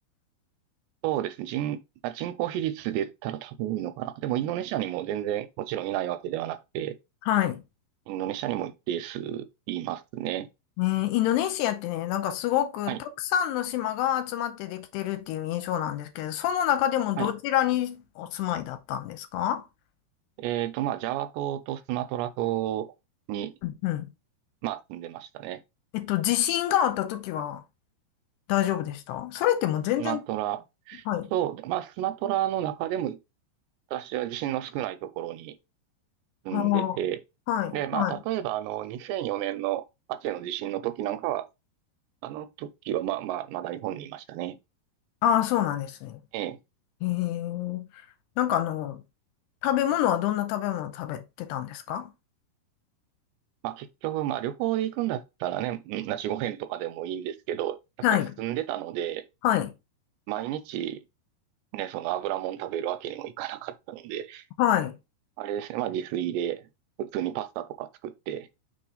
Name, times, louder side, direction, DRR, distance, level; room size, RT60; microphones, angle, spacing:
voice 1, 1.0-7.0 8.1-10.5 12.9-13.0 17.2-17.3 20.4-22.9 23.3-23.5 24.6-25.6 30.0-31.0 31.3-33.2 33.9-35.6 36.5-37.2 37.7-41.5 42.2-44.6 46.3-46.6 53.6-57.8 58.1-59.2 60.3-61.0 61.7-64.4 65.4-66.7 67.0-68.5, right 12 dB, 85° right, 2.6 m, -31 dB
voice 2, 7.3-7.6 10.8-19.7 23.6-24.1 25.9-27.6 28.5-30.2 31.1-31.3 36.5-37.0 37.5-38.2 45.2-46.2 47.0-47.9 48.4-49.0 49.6-52.1 58.0-58.3 59.4-59.7 64.6-65.0, left 12 dB, 80° left, 2.7 m, -27 dB
6.0 x 4.4 x 3.8 m
omnidirectional pair, 5.0 m